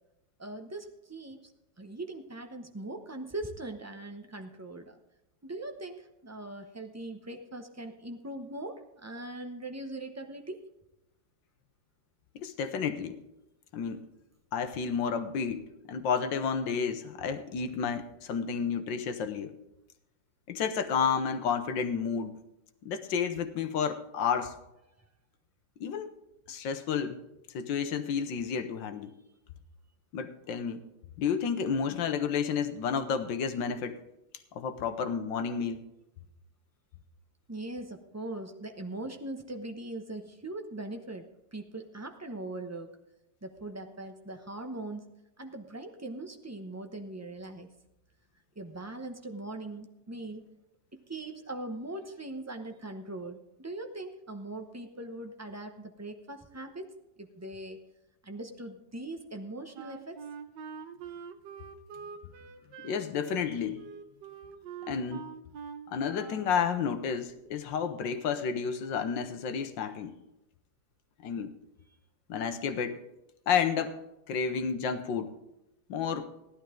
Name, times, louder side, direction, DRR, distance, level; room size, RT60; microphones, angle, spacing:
voice 1, 0.4-1.5 1.8-5.0 5.4-10.6 37.5-43.0 43.4-45.1 45.4-47.7 48.6-50.5 50.9-56.9 57.2-57.8 58.2-60.3, right 2 dB, 20° right, 5 dB, 0.4 m, -41 dB
voice 2, 12.3-13.2 13.7-14.0 14.5-19.5 20.5-22.4 22.8-24.6 25.8-26.1 26.5-27.2 27.5-29.1 30.1-30.8 31.2-34.0 34.5-35.8 62.8-63.8 64.9-65.2 65.9-70.1 71.2-71.5 72.3-73.0 73.5-74.0 74.3-75.3 75.9-76.3, left 6 dB, 85° left, 9 dB, 1.6 m, -31 dB
Wind instrument woodwind instrument, 59.7-66.6, right 6 dB, 75° right, 1.4 m, -45 dB
15.5 x 11.5 x 3.8 m, 0.91 s
omnidirectional pair, 2.0 m